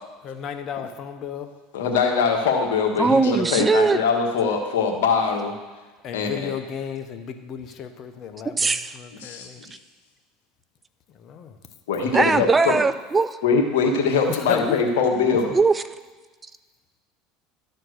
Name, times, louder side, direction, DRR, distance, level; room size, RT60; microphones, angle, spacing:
voice 1, 0.2-1.5 6.0-9.6 11.2-11.5 14.5-14.8, left 8 dB, 50° left, 8 dB, 0.9 m, -33 dB
voice 2, 1.7-5.5 6.1-6.5 9.2-9.7 11.9-12.8 13.4-15.5, left 5 dB, 80° left, 2 dB, 1.5 m, -22 dB
voice 3, 3.0-4.0 8.6-8.9 12.1-13.4 15.5-15.7, right 4 dB, 20° right, 13 dB, 0.4 m, -20 dB
12.5 x 4.4 x 6.4 m, 1.3 s
hypercardioid pair, 85°, 0 cm